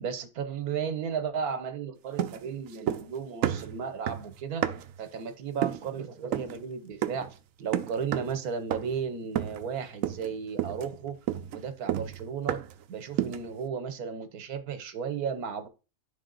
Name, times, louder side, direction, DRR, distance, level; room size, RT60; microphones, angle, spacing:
voice 1, 0.0-4.7 5.0-7.3 7.6-11.2 11.5-12.6 12.9-15.7, right 6 dB, 85° right, 10 dB, 1.4 m, -34 dB
sound 1, 2.2-3.2 3.4-5.0 5.6-5.9 6.3-6.6 7.0-7.3 7.7-8.4 8.7-9.0 9.4-9.7 10.0-10.3 10.6-12.8 13.2-13.5, right 11 dB, 70° right, 0.9 m, -31 dB
11.0 x 3.7 x 3.9 m, 0.31 s
omnidirectional pair, 1.6 m